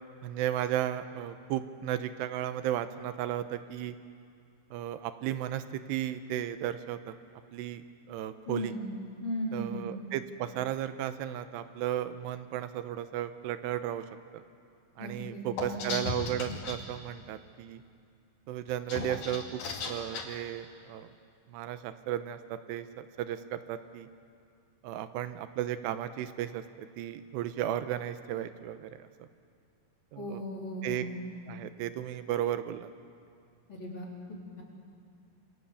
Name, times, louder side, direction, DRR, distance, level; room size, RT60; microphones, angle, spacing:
voice 1, 0.2-4.0 4.7-7.2 7.5-8.7 9.5-14.1 14.3-14.4 15.0-17.8 18.5-21.1 21.5-24.1 24.8-29.3 30.1-30.4 30.8-31.1 31.5-32.9, right 11 dB, 90° right, 11 dB, 3.0 m, -35 dB
voice 2, 8.5-8.9 9.2-9.9 15.0-16.0 30.2-31.2 33.7-34.1, equal, 30° left, -3 dB, 4.5 m, -36 dB
sound 1, 15.6-16.8 18.7-20.2, left 4 dB, 65° left, 3.9 m, -36 dB
27.5 x 24.5 x 7.1 m, 2.3 s
omnidirectional pair, 4.8 m